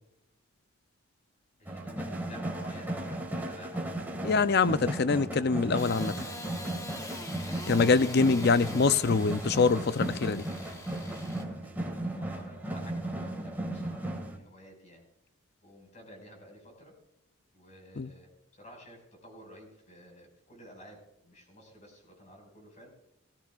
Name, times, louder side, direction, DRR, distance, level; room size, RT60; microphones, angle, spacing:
voice 1, 1.6-4.1 7.9-8.9 11.6-15.0 15.6-16.9 17.5-22.9, equal, 35° left, 5.4 m, -52 dB
sound 1, 1.7-14.4, right 1 dB, 10° right, 1.9 m, -36 dB
voice 2, 4.2-6.1 7.7-10.4 18.0-18.1, left 4 dB, 50° left, 0.5 m, -24 dB
Engine starting / Sawing, 5.8-11.4, left 2 dB, 15° left, 1.0 m, -44 dB
19.0 x 16.0 x 2.4 m
head